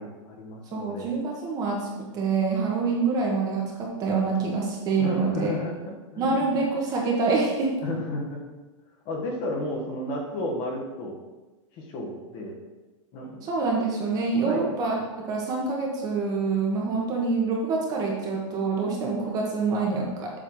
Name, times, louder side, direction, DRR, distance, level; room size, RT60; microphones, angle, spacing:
voice 1, 0.0-1.1 5.0-6.5 7.8-8.5 9.0-11.2 11.7-12.6 13.1-13.4 14.4-14.7, left 1 dB, 30° left, 0 dB, 1.4 m, -33 dB
voice 2, 0.7-5.5 6.2-7.7 13.4-14.9 15.2-20.3, right 4 dB, 20° right, -1 dB, 1.4 m, -26 dB
7.6 x 4.4 x 6.3 m, 1.1 s
supercardioid pair, 165°, 17 cm